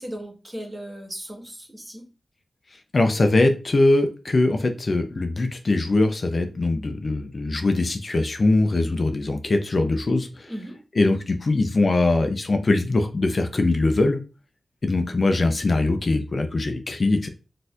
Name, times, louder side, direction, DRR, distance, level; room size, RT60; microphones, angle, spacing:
voice 1, 0.0-2.1 10.5-10.8, equal, 20° right, 1 dB, 1.4 m, -36 dB
voice 2, 2.9-10.5 11.0-14.2 14.8-17.3, left 2 dB, 55° left, 6 dB, 0.5 m, -22 dB
3.9 x 2.7 x 2.5 m, 0.32 s
cardioid pair, 45°, 0 cm